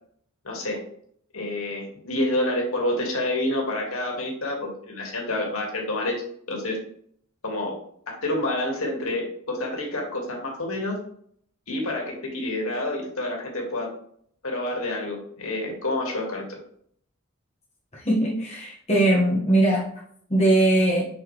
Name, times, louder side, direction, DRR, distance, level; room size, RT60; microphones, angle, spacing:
voice 1, 0.4-0.8 1.3-6.2 6.5-6.8 7.4-7.7 8.1-11.0 11.7-13.9 14.4-16.6, left 1 dB, 85° left, 0 dB, 2.2 m, -28 dB
voice 2, 17.9-19.9 20.3-21.1, right 1 dB, 30° left, -6 dB, 1.7 m, -20 dB
5.9 x 5.7 x 3.3 m, 0.64 s
head